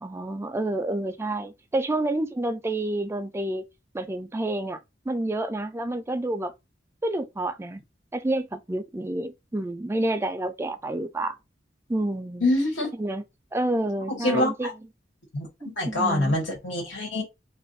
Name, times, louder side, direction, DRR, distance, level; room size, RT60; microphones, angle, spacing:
voice 1, 0.0-3.7 3.9-4.8 5.1-6.5 7.0-7.8 8.1-11.4 11.9-12.5 13.0-13.2 13.5-14.7 15.6-16.4, right 1 dB, 15° right, 0.3 m, -29 dB
voice 2, 12.4-12.9 14.1-14.7 15.3-15.5 15.8-17.2, left 1 dB, 85° left, 1.5 m, -25 dB
2.5 x 2.4 x 3.9 m
head